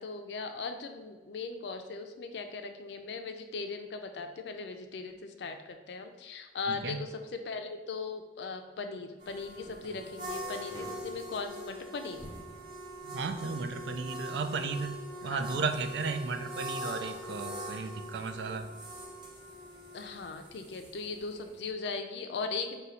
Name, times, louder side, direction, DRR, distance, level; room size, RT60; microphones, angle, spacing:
voice 1, 0.0-12.2 15.2-15.4 19.9-22.8, left 4 dB, 80° left, 6 dB, 0.4 m, -39 dB
voice 2, 6.7-7.1 13.0-18.7, right 4 dB, 80° right, 8 dB, 0.4 m, -35 dB
sound 1, 9.2-21.7, equal, 25° right, 0.6 m, -42 dB
4.0 x 2.3 x 4.2 m, 1.3 s
head